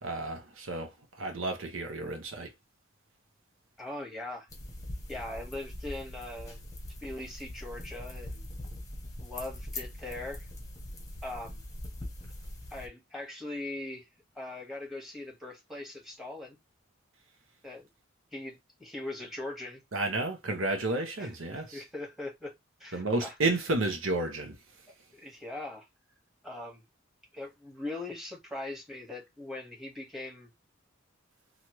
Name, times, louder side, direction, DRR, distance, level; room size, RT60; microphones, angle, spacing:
voice 1, 0.0-2.5 19.9-21.8 22.9-24.6, right 2 dB, 70° right, 0.8 m, -31 dB
voice 2, 3.8-4.5 5.1-6.6 7.0-8.5 9.2-10.5 11.2-11.6 12.7-14.1 14.3-16.6 17.6-17.9 18.3-19.8 21.2-22.5 22.8-23.3 25.1-25.9 26.4-26.8 27.3-30.5, left 2 dB, ahead, 1.3 m, -40 dB
sound 1, 4.5-12.9, left 1 dB, 15° left, 0.9 m, -42 dB
3.0 x 2.4 x 3.0 m
head